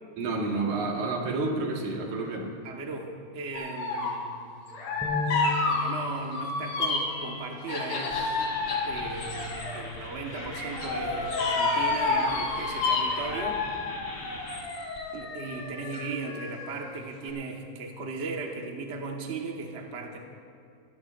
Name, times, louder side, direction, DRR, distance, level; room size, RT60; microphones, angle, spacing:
voice 1, 0.2-2.5, right 3 dB, 80° right, 0 dB, 3.1 m, -29 dB
voice 2, 2.6-4.6 5.7-8.5 8.8-13.6 15.1-20.2, right 3 dB, 45° right, 1 dB, 0.8 m, -37 dB
sound 1, 3.5-4.3 4.7-7.2 7.7-9.8 10.3-17.0 17.3-17.4, left 3 dB, 90° left, 3.9 m, -30 dB
sound 2, 5.0-9.3 9.8-10.0 10.8-11.3, left 2 dB, ahead, 1.6 m, -38 dB
sound 3, 7.1-7.5 8.1-15.6, left 1 dB, 25° left, 2.2 m, -43 dB
25.0 x 14.5 x 2.6 m, 2.4 s
omnidirectional pair, 3.4 m